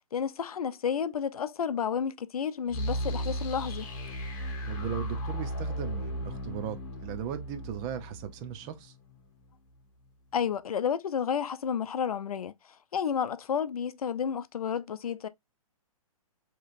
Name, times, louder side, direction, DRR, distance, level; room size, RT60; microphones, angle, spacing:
voice 1, 0.1-3.9 10.3-15.3, left 7 dB, 90° left, 0.5 m, -31 dB
sound 1, 2.7-9.5, equal, 40° left, 1.9 m, -36 dB
voice 2, 4.7-8.9, right 9 dB, 20° right, 0.4 m, -37 dB
4.8 x 2.9 x 2.5 m
hypercardioid pair, 150°, 18 cm